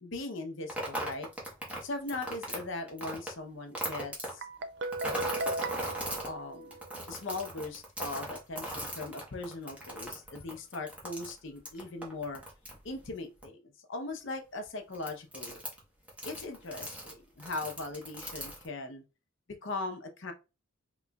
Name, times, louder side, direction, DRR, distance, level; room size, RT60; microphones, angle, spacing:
voice 1, 0.0-1.3 1.8-4.5 6.2-6.7 7.1-12.4 12.8-15.6 16.2-19.0 19.6-20.3, left 2 dB, 65° left, 0.7 m, -39 dB
sound 1, 0.7-3.3 3.7-4.3 4.8-6.3 6.7-13.1 13.4-13.5 14.6-14.7 14.9-15.8 16.1-17.1 17.4-18.7, right 1 dB, 5° right, 1.0 m, -38 dB
Guitar, 4.4-7.2, right 2 dB, 55° right, 0.4 m, -37 dB
3.9 x 3.0 x 2.3 m
head